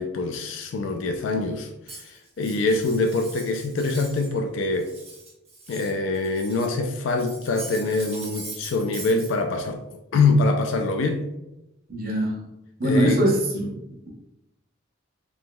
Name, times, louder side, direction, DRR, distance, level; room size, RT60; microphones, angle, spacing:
voice 1, 0.0-4.9 5.7-9.8 10.1-11.3 12.8-13.3, left 3 dB, 75° left, 5 dB, 0.3 m, -24 dB
Cutlery silverware, 1.9-4.3 4.6-6.8 7.1-9.3, right 3 dB, 30° right, 1.2 m, -41 dB
voice 2, 11.9-12.5 12.8-13.8, right 1 dB, 50° right, -3 dB, 0.9 m, -22 dB
3.6 x 2.9 x 2.2 m, 0.92 s
head